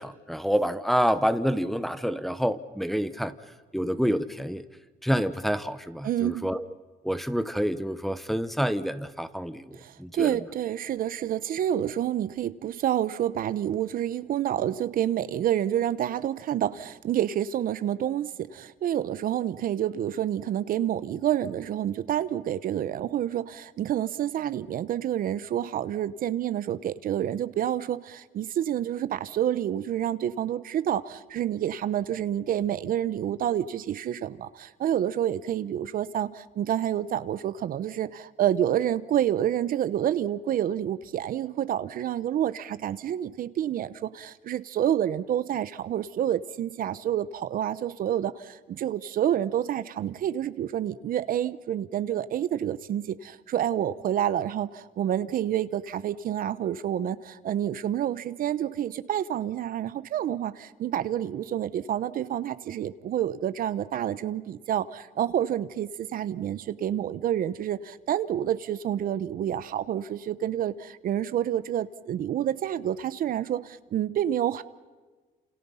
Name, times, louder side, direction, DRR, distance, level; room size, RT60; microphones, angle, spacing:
voice 1, 0.0-3.3 3.7-4.6 5.0-6.6 7.0-10.4, equal, ahead, 11 dB, 1.1 m, -28 dB
voice 2, 6.0-6.5 9.7-74.6, right 10 dB, 55° right, 14 dB, 1.0 m, -28 dB
29.5 x 28.0 x 5.7 m, 1.3 s
cardioid pair, 110°, 17 cm